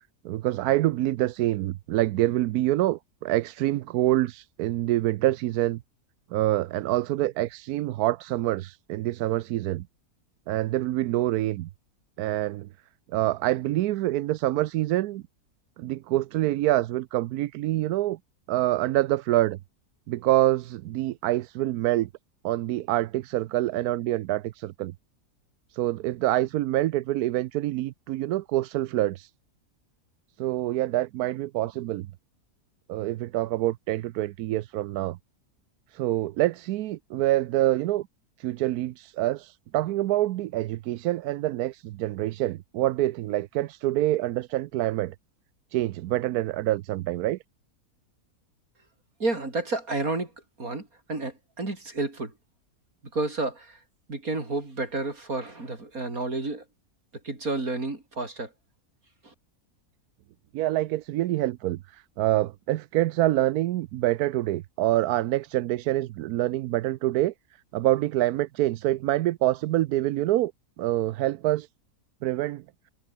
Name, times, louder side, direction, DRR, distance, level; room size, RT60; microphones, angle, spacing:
voice 1, 0.2-5.8 6.3-9.9 10.5-11.7 12.2-12.7 13.1-15.2 15.8-18.2 18.5-19.6 20.1-22.1 22.4-24.9 25.7-29.3 30.4-32.1 32.9-35.2 35.9-38.1 38.4-45.1 45.7-47.4 60.5-67.3 67.7-70.5 70.8-71.7 72.2-72.6, right 15 dB, 80° right, 1.1 m, -26 dB
voice 2, 49.2-50.3 50.6-52.3 53.1-53.8 54.1-56.7 57.2-58.5 59.2-59.3, right 2 dB, 65° right, 5.3 m, -30 dB
omnidirectional pair, 1.6 m